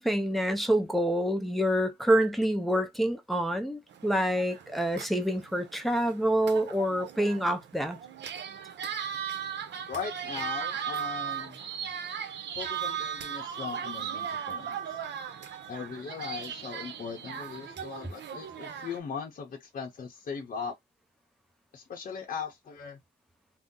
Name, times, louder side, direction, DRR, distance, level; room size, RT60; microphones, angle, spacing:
voice 1, 0.0-8.0, right 1 dB, ahead, 0.5 m, -27 dB
sound 1, 3.9-19.0, right 8 dB, 75° right, 0.6 m, -37 dB
voice 2, 9.9-11.6 12.6-15.0 15.7-20.7 21.7-23.0, left 6 dB, 45° left, 0.7 m, -39 dB
2.7 x 2.0 x 3.7 m
wide cardioid pair, 155°, 18 cm